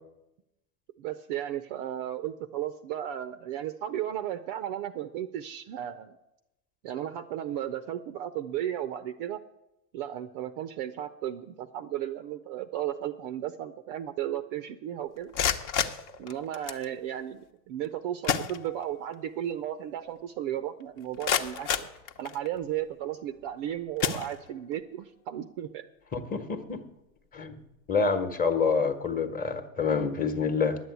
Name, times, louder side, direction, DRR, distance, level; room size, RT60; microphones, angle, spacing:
voice 1, 1.0-6.1 6.8-9.4 9.9-15.3 16.2-21.7 22.2-25.9, right 11 dB, 35° right, 11 dB, 0.5 m, -34 dB
sound 1, 15.2-16.9 17.8-17.9 18.2-19.1 19.5-19.6 20.2-20.3 20.8-22.7 23.3-23.5 24.0-24.8, left 8 dB, 45° left, 1.1 m, -31 dB
voice 2, 26.1-26.8 27.3-27.5 27.9-30.8, left 5 dB, 15° left, 8 dB, 1.2 m, -27 dB
10.5 x 7.9 x 8.2 m, 0.90 s
hypercardioid pair, 110°, 49 cm